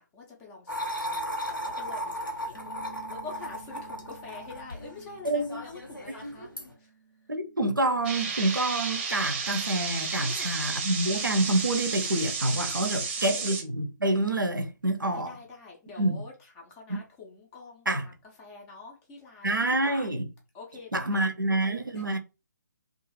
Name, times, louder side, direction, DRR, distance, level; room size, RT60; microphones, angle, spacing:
voice 1, 0.0-6.5 6.8-6.9 10.2-10.6 12.9-13.5 15.0-18.1 18.4-20.1 20.5-21.3 21.9-22.2, left 3 dB, 10° left, 0.3 m, -46 dB
sound 1, 0.7-6.7, equal, 90° left, 1.0 m, -36 dB
Bass guitar, 2.5-8.8, right 6 dB, 65° left, 0.6 m, -53 dB
voice 2, 5.2-5.6 7.3-15.3 16.0-16.2 16.9-17.0 17.9-18.0 19.4-20.3 20.9-22.2, right 2 dB, 80° right, 0.5 m, -27 dB
sound 2, 8.0-13.6, right 5 dB, 30° right, 0.6 m, -32 dB
2.4 x 2.3 x 3.0 m
figure-of-eight pair, 140°, 11 cm